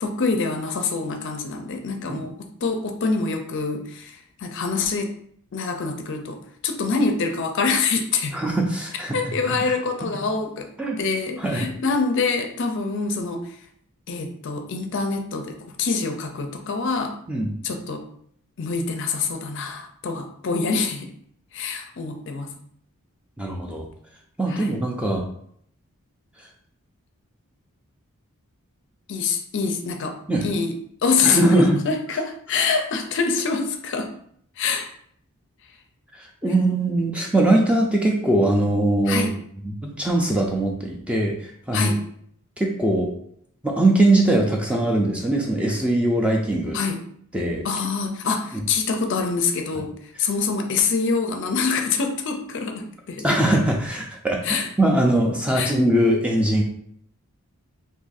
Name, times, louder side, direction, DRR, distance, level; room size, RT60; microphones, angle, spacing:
voice 1, 0.0-2.3 2.6-5.1 5.5-8.4 9.1-10.7 11.0-13.6 14.1-17.2 17.6-18.1 18.6-21.1 21.5-22.5 24.5-24.7 29.1-30.7 31.0-34.1 34.6-34.9 39.1-39.3 41.7-42.0 46.7-47.0 47.6-49.9 50.2-53.3 54.4-54.7 55.6-55.7, left 4 dB, 55° left, 5 dB, 0.4 m, -25 dB
voice 2, 8.3-9.7 10.8-11.0 11.4-11.7 17.3-17.6 23.4-23.9 24.4-25.2 30.3-30.5 31.2-31.7 32.5-32.6 36.1-39.3 39.6-41.9 42.6-43.1 43.6-46.8 47.3-47.7 48.5-48.6 53.2-56.6, right 1 dB, 5° right, 0 dB, 0.4 m, -21 dB
2.6 x 2.5 x 3.9 m, 0.65 s
head